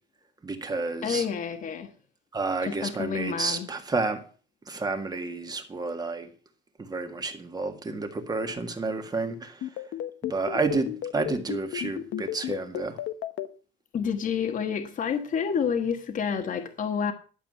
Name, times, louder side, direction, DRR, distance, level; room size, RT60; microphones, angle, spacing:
voice 1, 0.4-1.2 2.3-4.2 4.7-6.3 6.8-9.6 10.2-13.0, right 3 dB, 20° right, 1.8 m, -30 dB
voice 2, 1.0-1.9 2.6-3.7 13.9-17.1, left 7 dB, 40° left, 1.4 m, -29 dB
sound 1, 9.6-13.5, left 12 dB, 75° left, 1.1 m, -32 dB
12.0 x 7.5 x 7.5 m
cardioid pair, 165°, 20 cm